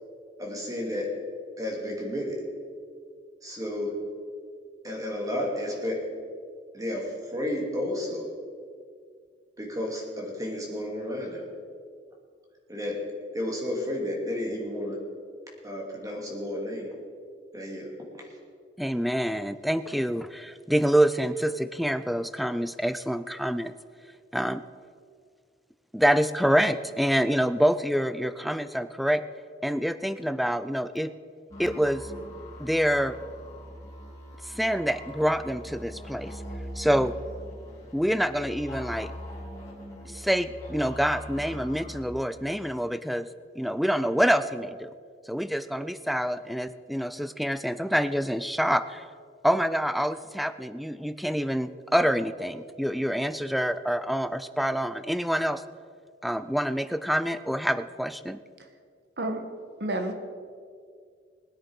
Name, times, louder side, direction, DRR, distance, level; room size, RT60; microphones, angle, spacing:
voice 1, 0.4-1.1 1.6-2.4 3.4-3.9 4.8-6.0 6.7-8.3 9.6-11.4 12.7-13.0 13.3-15.0 15.6-16.9 17.5-17.9 18.2-18.3, left 1 dB, 20° right, -1 dB, 2.6 m, -32 dB
voice 2, 18.8-23.7 24.3-24.6 25.9-29.2 29.6-31.1 31.6-32.0 32.6-33.1 34.4-36.3 36.8-37.1 37.9-39.1 40.1-43.3 43.6-44.9 45.3-49.0 49.4-55.6 56.2-58.4, equal, ahead, 13 dB, 0.4 m, -26 dB
sound 1, 31.5-42.0, left 1 dB, 20° left, 3.7 m, -42 dB
voice 3, 59.8-60.1, right 1 dB, 70° right, 6 dB, 1.4 m, -29 dB
20.5 x 9.5 x 4.8 m, 2.1 s
head